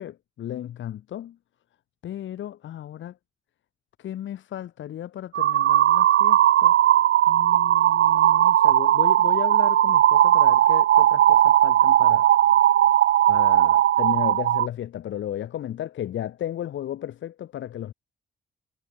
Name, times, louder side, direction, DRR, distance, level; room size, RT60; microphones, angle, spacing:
voice 1, 0.0-1.4 2.0-3.1 4.0-6.7 7.3-12.3 13.3-17.9, left 11 dB, 75° left, 3.7 m, -34 dB
sound 1, 5.3-14.7, right 12 dB, 75° right, 1.1 m, -18 dB
wide cardioid pair, 165°, 20 cm